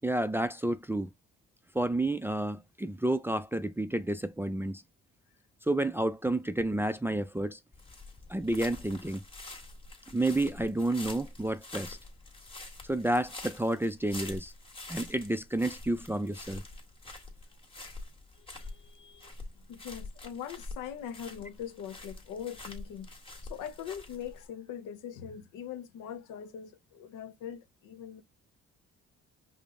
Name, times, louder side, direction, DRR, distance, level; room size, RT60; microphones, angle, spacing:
voice 1, 0.0-1.1 1.7-4.8 5.7-7.6 8.3-9.2 10.1-12.0 12.9-14.5 14.9-16.6, right 1 dB, 10° right, 0.3 m, -30 dB
sound 1, 7.7-24.4, left 2 dB, 20° left, 1.5 m, -46 dB
voice 2, 18.4-28.2, left 9 dB, 90° left, 0.8 m, -42 dB
5.1 x 2.1 x 3.5 m
cardioid pair, 90°, 30 cm